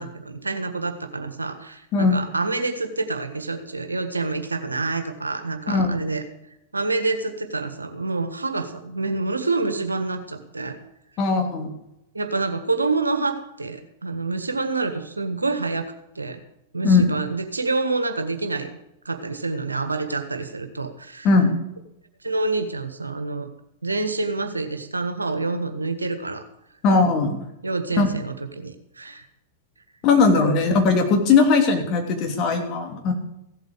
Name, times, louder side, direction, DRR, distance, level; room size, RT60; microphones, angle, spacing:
voice 1, 0.0-6.2 6.7-10.8 12.1-16.4 16.7-18.8 19.0-21.3 22.2-23.5 23.8-26.5 27.6-29.2, right 3 dB, 90° right, 8 dB, 1.6 m, -27 dB
voice 2, 11.2-11.7 16.8-17.1 21.2-21.6 26.8-27.4 28.0-28.1 30.0-33.1, left 4 dB, 40° left, 2 dB, 3.2 m, -19 dB
16.0 x 8.1 x 6.7 m, 0.85 s
figure-of-eight pair, 100°, 0 cm